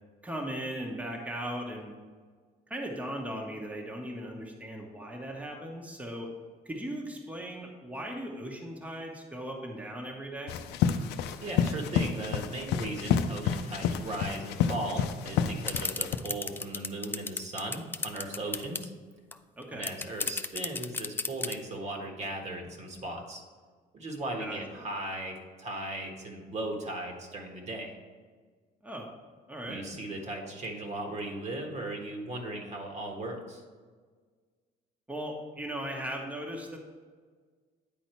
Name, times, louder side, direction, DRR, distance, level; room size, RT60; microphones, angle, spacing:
voice 1, 0.2-1.9 2.7-6.3 6.6-10.5 19.6-19.9 24.4-24.9 28.8-29.1 29.5-29.8 35.1-36.8, right 1 dB, 10° right, 0 dB, 1.1 m, -38 dB
sound 1, 10.5-16.2, left 8 dB, 85° left, 0.5 m, -29 dB
voice 2, 11.4-18.9 19.7-23.4 23.9-27.9 29.6-33.6, right 1 dB, 40° right, 2 dB, 1.5 m, -37 dB
sound 2, 15.7-18.9 19.3-19.4 19.6-21.5, left 3 dB, 10° left, 0.3 m, -33 dB
9.3 x 4.2 x 4.4 m, 1.5 s
cardioid pair, 110°, 17 cm